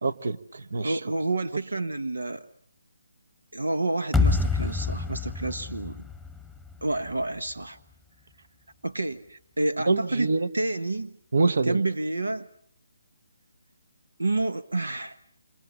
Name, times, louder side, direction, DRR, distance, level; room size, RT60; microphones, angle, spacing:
voice 1, 0.0-1.0 9.9-10.5 11.3-11.8, right 3 dB, 70° right, 14 dB, 1.4 m, -25 dB
voice 2, 0.8-2.5 3.5-6.0 6.8-7.8 8.8-11.1 11.7-12.5 14.2-15.2, right 2 dB, 90° right, 14 dB, 1.1 m, -29 dB
sound 1, 4.1-7.2, left 4 dB, ahead, 1.1 m, -27 dB
28.0 x 27.5 x 7.1 m, 0.62 s
figure-of-eight pair, 155°, 0 cm